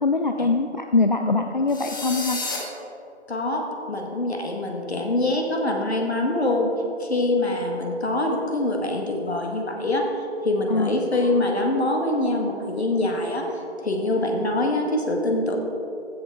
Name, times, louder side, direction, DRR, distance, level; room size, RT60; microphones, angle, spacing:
voice 1, 0.0-2.4 10.7-10.9, left 3 dB, 45° left, 6 dB, 0.4 m, -22 dB
sound 1, 1.7-2.6, left 3 dB, 20° left, 0.9 m, -30 dB
voice 2, 3.3-6.7 7.0-10.1 10.4-15.6, left 2 dB, 65° left, 1 dB, 1.9 m, -24 dB
15.0 x 7.3 x 3.7 m, 2.7 s
figure-of-eight pair, 150°, 35 cm